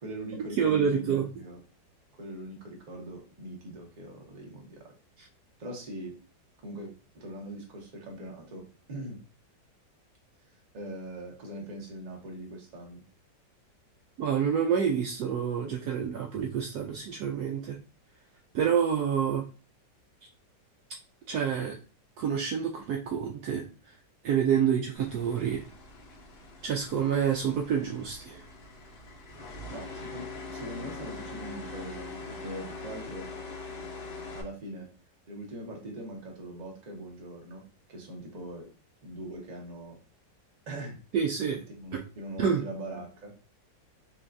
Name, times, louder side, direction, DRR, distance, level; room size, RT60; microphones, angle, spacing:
voice 1, 0.0-1.6 2.2-4.9 5.6-6.2 6.6-9.2 10.5-13.0 29.7-33.3 34.3-34.9 35.3-37.6 37.9-38.7 39.0-40.0 40.7-41.0 41.5-43.3, right 1 dB, 30° right, 0 dB, 0.8 m, -41 dB
voice 2, 0.6-1.3 14.2-17.8 18.5-19.4 21.3-21.8 22.2-23.7 24.2-25.6 26.6-28.4 41.1-41.6 42.4-42.6, right 7 dB, 70° right, 1 dB, 1.0 m, -27 dB
sound 1, 24.9-34.4, left 3 dB, 50° left, 0.7 m, -43 dB
5.5 x 2.4 x 2.6 m, 0.34 s
omnidirectional pair, 2.0 m